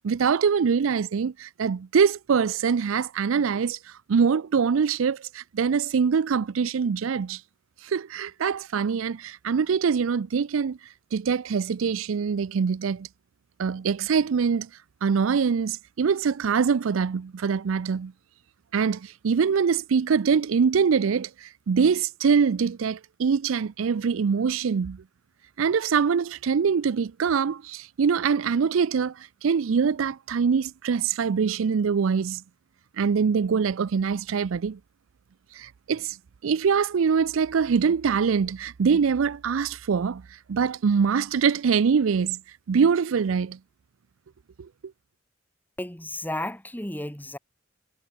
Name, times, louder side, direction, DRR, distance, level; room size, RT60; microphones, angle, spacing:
voice 1, 0.0-3.8 4.1-7.4 7.8-10.8 11.1-13.1 13.6-14.7 15.0-18.1 18.7-25.0 25.6-29.1 29.4-32.4 33.0-34.8 35.6-36.2 36.4-40.2 40.5-42.4 42.7-43.6 44.6-44.7, right 6 dB, 85° right, 0.4 m, -24 dB
voice 2, 45.8-47.4, left 1 dB, 10° left, 3.0 m, -33 dB
head